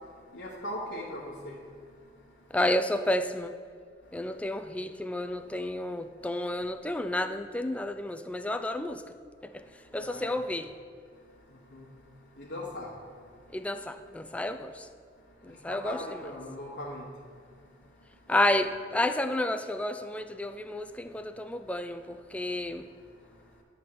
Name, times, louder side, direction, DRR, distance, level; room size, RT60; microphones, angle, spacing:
voice 1, 0.3-1.6 10.0-10.3 11.7-11.8 12.4-12.9 15.7-17.0, left 1 dB, 75° left, -7 dB, 1.2 m, -39 dB
voice 2, 2.5-3.6 4.1-9.0 9.4-10.7 13.5-14.9 15.4-16.2 18.3-22.8, left 1 dB, 10° left, 9 dB, 0.3 m, -31 dB
10.5 x 4.2 x 6.6 m, 2.2 s
head